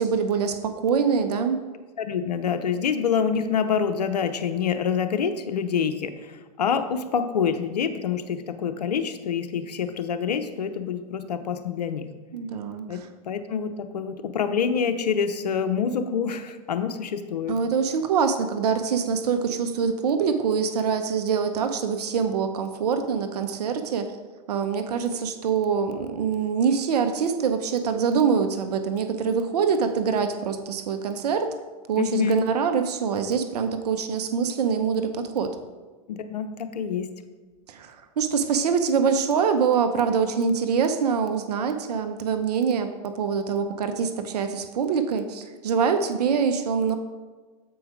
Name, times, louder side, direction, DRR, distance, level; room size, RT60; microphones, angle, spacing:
voice 1, 0.0-1.6 12.3-13.1 17.5-24.1 24.5-31.5 31.9-35.6 37.7-47.0, right 6 dB, 80° right, 8 dB, 0.7 m, -24 dB
voice 2, 2.0-12.1 12.9-13.0 13.3-17.6 32.0-32.4 36.1-37.1, left 7 dB, 90° left, 9 dB, 0.7 m, -26 dB
7.8 x 4.7 x 4.9 m, 1.3 s
hypercardioid pair, 110°, 20 cm